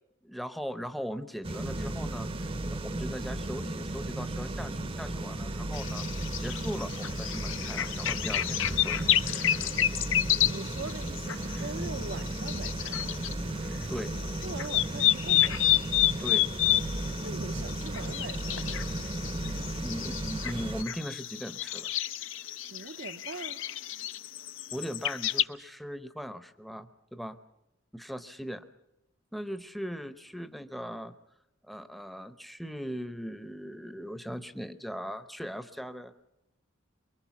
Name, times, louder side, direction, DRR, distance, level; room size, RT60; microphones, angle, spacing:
voice 1, 0.2-6.1 6.4-9.5 13.9-14.1 16.2-16.5 19.8-21.9 24.7-27.4 27.9-28.6 29.3-31.1 31.7-36.1, equal, ahead, 11 dB, 0.8 m, -39 dB
sound 1, 1.4-20.8, right 1 dB, 30° right, 0.8 m, -35 dB
sound 2, 5.7-13.3 13.7-25.4, left 13 dB, 70° left, 0.7 m, -30 dB
voice 2, 10.5-13.1 14.4-15.8 17.2-18.8 22.7-23.6, right 4 dB, 60° right, 11 dB, 0.8 m, -42 dB
24.5 x 23.0 x 6.0 m, 0.90 s
head